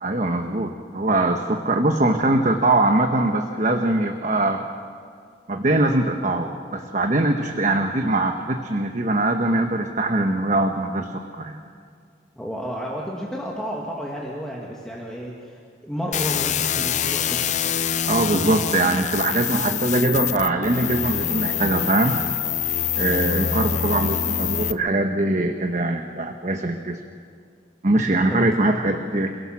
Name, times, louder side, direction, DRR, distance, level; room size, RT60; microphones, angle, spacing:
voice 1, 0.0-4.6 5.5-11.6 18.1-22.2 23.0-27.0 27.8-29.4, right 2 dB, 40° right, 4 dB, 1.1 m, -22 dB
voice 2, 12.4-17.5 28.3-28.7, equal, 5° left, -3 dB, 2.1 m, -31 dB
sound 1, 16.1-24.7, left 9 dB, 40° left, 0.5 m, -25 dB
28.5 x 17.0 x 6.0 m, 2.2 s
head